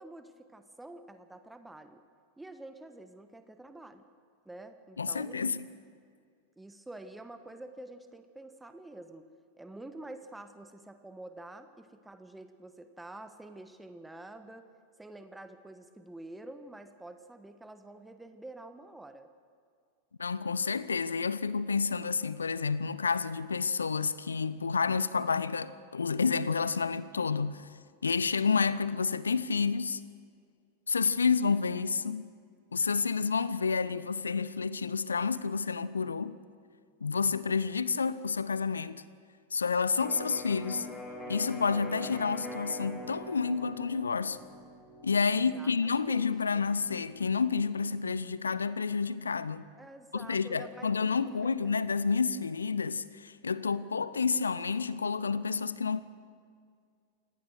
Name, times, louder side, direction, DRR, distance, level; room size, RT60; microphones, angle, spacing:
voice 1, 0.0-2.0 2.4-4.0 4.4-5.5 6.6-9.2 9.6-14.7 15.0-19.3 45.5-46.6 49.8-50.9 51.2-51.7, right 2 dB, 5° right, 1.2 m, -48 dB
voice 2, 5.0-5.6 20.2-27.7 28.0-30.0 30.9-32.3 32.7-36.4 37.0-39.0 39.5-40.9 41.3-44.4 45.0-49.7 50.1-56.0, left 5 dB, 75° left, 0.7 m, -29 dB
Electric guitar, 40.0-47.8, left 1 dB, 15° left, 4.6 m, -44 dB
28.0 x 18.5 x 6.5 m
figure-of-eight pair, 90°, 0 cm